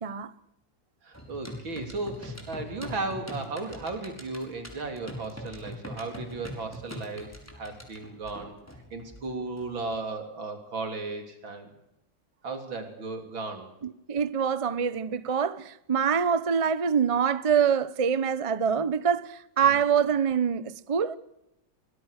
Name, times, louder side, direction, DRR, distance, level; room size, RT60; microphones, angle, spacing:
voice 1, 0.0-0.3 13.8-21.2, right 7 dB, 45° right, 0.4 m, -25 dB
voice 2, 1.0-8.5 8.9-11.7 12.4-13.7 19.6-19.7, right 3 dB, 80° right, 4.0 m, -35 dB
sound 1, 1.1-10.0, equal, 5° left, 5.2 m, -43 dB
23.5 x 21.0 x 6.5 m
omnidirectional pair, 2.1 m